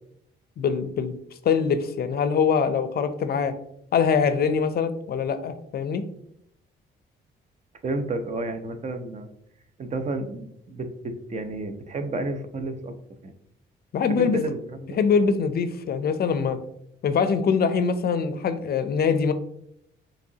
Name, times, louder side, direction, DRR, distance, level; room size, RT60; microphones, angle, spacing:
voice 1, 0.6-1.2 1.4-3.6 3.9-6.0 13.9-14.4 15.0-16.6 17.0-19.3, left 6 dB, 50° left, 11 dB, 0.4 m, -23 dB
voice 2, 7.8-9.3 9.8-13.0 13.2-13.3 14.1-15.0, right 2 dB, 35° right, 8 dB, 0.5 m, -31 dB
5.3 x 3.0 x 2.7 m, 0.74 s
cardioid pair, 90°, 20 cm